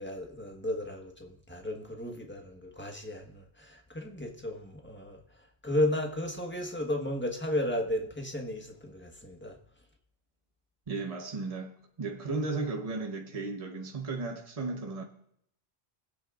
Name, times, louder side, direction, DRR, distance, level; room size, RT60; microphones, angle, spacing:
voice 1, 0.0-5.2 5.6-9.6, left 1 dB, 10° left, 1.4 m, -34 dB
voice 2, 10.9-15.0, right 3 dB, 35° right, 1.2 m, -35 dB
24.0 x 8.6 x 2.5 m
omnidirectional pair, 1.1 m